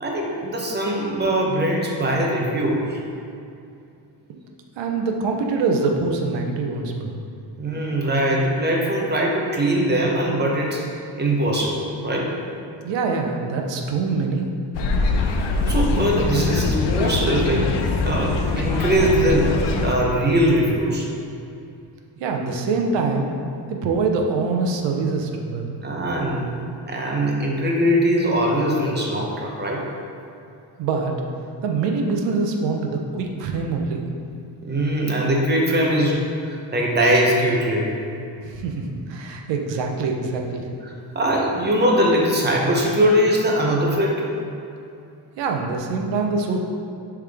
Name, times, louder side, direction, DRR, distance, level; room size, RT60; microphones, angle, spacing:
voice 1, 0.0-3.0 7.6-10.9 11.2-12.3 15.7-17.8 18.0-19.6 19.8-21.1 25.8-26.6 26.9-29.8 34.6-37.9 41.1-44.3, right 1 dB, 25° right, -1 dB, 0.8 m, -21 dB
voice 2, 4.8-7.2 12.8-14.5 22.2-23.3 23.7-25.8 30.8-31.1 31.6-34.0 38.4-40.7 45.4-46.6, right 4 dB, 70° right, 2 dB, 0.9 m, -24 dB
sound 1, 14.7-20.0, left 3 dB, 70° left, 0.7 m, -23 dB
10.0 x 3.6 x 3.5 m, 2.6 s
cardioid pair, 155°, 45 cm